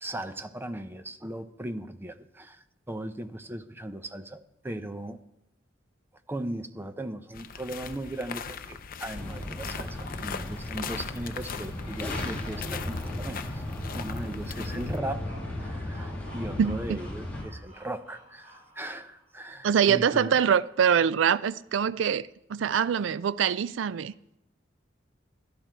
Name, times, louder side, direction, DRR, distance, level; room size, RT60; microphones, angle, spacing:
voice 1, 0.0-2.6 2.9-5.2 6.3-13.6 13.9-15.3 15.6-20.4, right 1 dB, 10° right, 0.6 m, -38 dB
sound 1, 7.3-15.0, left 6 dB, 50° left, 0.6 m, -39 dB
sound 2, 9.2-17.4, left 1 dB, 10° left, 2.3 m, -36 dB
sound 3, 14.3-19.4, equal, 40° right, 4.2 m, -51 dB
voice 2, 16.6-17.0 19.6-24.1, right 7 dB, 70° right, 0.4 m, -24 dB
13.0 x 10.5 x 4.5 m
head